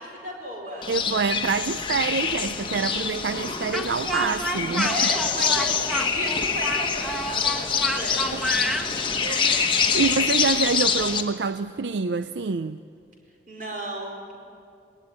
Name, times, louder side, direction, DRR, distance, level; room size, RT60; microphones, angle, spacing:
voice 1, 0.0-0.9 4.6-8.3 9.2-9.6 13.5-14.4, right 1 dB, 45° right, 1 dB, 4.6 m, -34 dB
sound 1, 0.8-11.2, left 6 dB, 25° left, 1.2 m, -25 dB
voice 2, 0.9-4.9 8.3-8.4 9.2-12.8, right 4 dB, 80° right, 12 dB, 0.5 m, -26 dB
Speech, 3.7-8.9, equal, 5° right, 1.5 m, -29 dB
21.0 x 19.0 x 9.8 m, 2.4 s
head